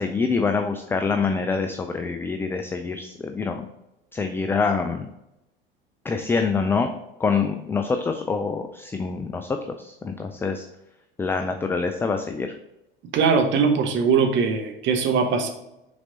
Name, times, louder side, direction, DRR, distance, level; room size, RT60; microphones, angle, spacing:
voice 1, 0.0-3.6 4.1-5.1 6.0-6.9 7.2-9.5 9.8-10.6 11.2-12.5, left 4 dB, 10° left, 6 dB, 0.3 m, -25 dB
voice 2, 13.1-15.5, right 5 dB, 40° right, 5 dB, 1.1 m, -21 dB
6.0 x 4.1 x 3.8 m, 0.90 s
figure-of-eight pair, 75°, 29 cm